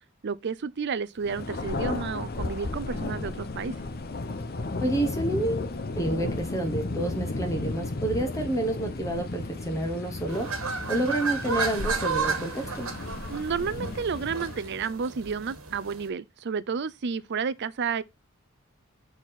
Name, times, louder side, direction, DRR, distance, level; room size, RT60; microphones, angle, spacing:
voice 1, 0.2-3.7 13.3-18.0, right 5 dB, 55° right, 0.5 m, -31 dB
Thunder, 1.2-14.9, left 2 dB, 45° left, 0.8 m, -34 dB
voice 2, 4.8-10.5 10.9-12.9, right 1 dB, 15° left, 1.2 m, -29 dB
sound 1, 10.3-16.1, right 4 dB, 90° right, 1.6 m, -32 dB
7.3 x 4.1 x 4.1 m
head